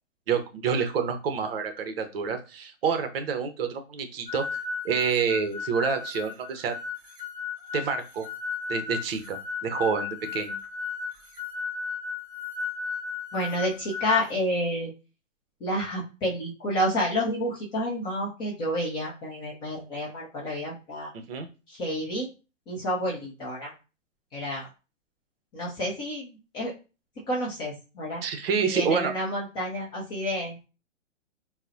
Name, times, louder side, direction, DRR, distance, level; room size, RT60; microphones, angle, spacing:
voice 1, 0.3-6.8 7.7-8.3 8.7-10.6 21.3-21.5 28.2-29.1, right 6 dB, 50° right, 7 dB, 0.7 m, -28 dB
sound 1, 4.3-14.3, left 5 dB, 20° right, 1.6 m, -35 dB
voice 2, 13.3-14.9 15.6-21.1 21.7-22.3 22.7-23.7 24.3-24.7 25.5-26.7 27.3-28.2 28.6-30.6, equal, 10° left, -5 dB, 0.4 m, -29 dB
3.9 x 2.1 x 2.6 m, 0.31 s
hypercardioid pair, 125°, 38 cm